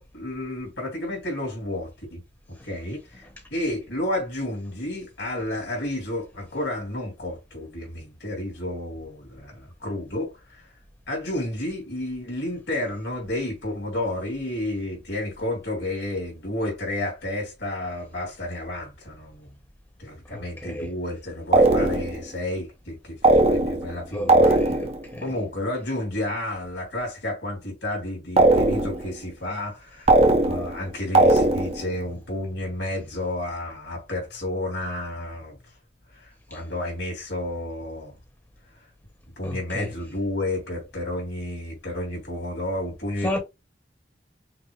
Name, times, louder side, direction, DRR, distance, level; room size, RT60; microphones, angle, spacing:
voice 1, 0.0-2.2 2.5-10.7 11.1-19.5 20.0-24.6 25.2-35.6 36.1-38.1 39.4-43.4, left 1 dB, 70° left, 2.9 m, -31 dB
voice 2, 20.3-20.9 24.1-25.2 39.4-39.9 43.2-43.4, left 1 dB, 15° left, 1.1 m, -32 dB
sound 1, 21.5-22.2 23.2-24.0 24.3-25.0 28.4-29.1 30.1-30.8 31.1-31.9, right 2 dB, 35° right, 0.8 m, -18 dB
5.9 x 2.1 x 3.4 m
head